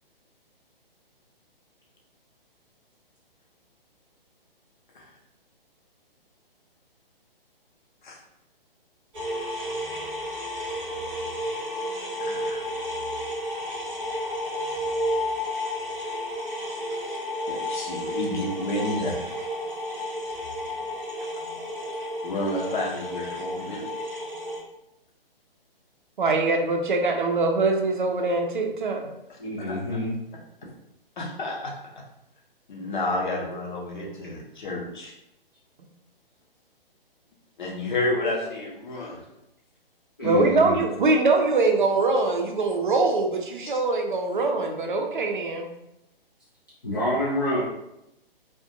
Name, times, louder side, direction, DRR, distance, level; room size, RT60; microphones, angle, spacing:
sound 1, 9.1-24.6, left 1 dB, 20° right, 0.9 m, -32 dB
voice 1, 12.2-12.7 16.0-16.1 17.3-19.3 22.2-23.9 29.3-29.4 29.7-29.8 31.2-31.7 32.7-35.1 37.6-39.3 43.7-43.8, left 2 dB, 55° left, -1 dB, 0.7 m, -30 dB
voice 2, 26.2-29.1 40.2-45.7, right 3 dB, 55° right, 3 dB, 0.5 m, -23 dB
voice 3, 29.4-30.1 40.2-40.8 46.8-47.6, equal, 25° left, -9 dB, 0.4 m, -27 dB
2.4 x 2.2 x 2.6 m, 0.84 s
figure-of-eight pair, 130°, 30 cm